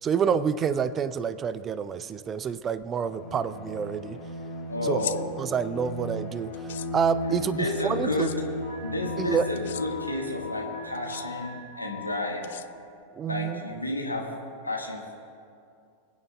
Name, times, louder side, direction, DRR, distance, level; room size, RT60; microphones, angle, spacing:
voice 1, 0.0-4.2 4.8-5.0 5.4-6.5 6.9-8.3 9.2-9.5 13.2-13.6, right 7 dB, 25° right, 15 dB, 0.4 m, -28 dB
Bowed string instrument, 3.0-11.5, left 1 dB, 30° left, 3.4 m, -36 dB
voice 2, 4.7-5.3 7.3-8.3 8.8-12.5 13.3-14.3 14.6-15.2, left 2 dB, 85° left, 0 dB, 1.6 m, -31 dB
sound 1, 4.9-5.2 6.5-6.9 8.1-8.4 9.5-9.8 10.9-11.2 12.4-13.0, left 12 dB, 60° left, 0.4 m, -37 dB
Alarm, 8.6-12.1, left 4 dB, 75° right, 2.3 m, -42 dB
27.5 x 9.4 x 2.3 m, 2.4 s
figure-of-eight pair, 90°, 0 cm